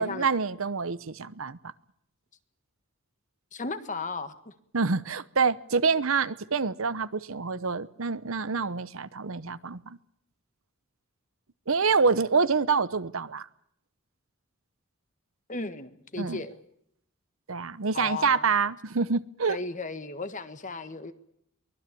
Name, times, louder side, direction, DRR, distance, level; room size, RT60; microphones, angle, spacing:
voice 1, 0.0-1.6 4.7-10.0 11.7-13.5 16.2-16.4 17.5-19.6, right 5 dB, 70° right, 16 dB, 0.9 m, -26 dB
voice 2, 3.5-4.5 15.5-16.6 17.9-18.5 19.5-21.1, left 3 dB, 35° left, 11 dB, 1.6 m, -35 dB
23.5 x 18.5 x 8.5 m, 0.73 s
head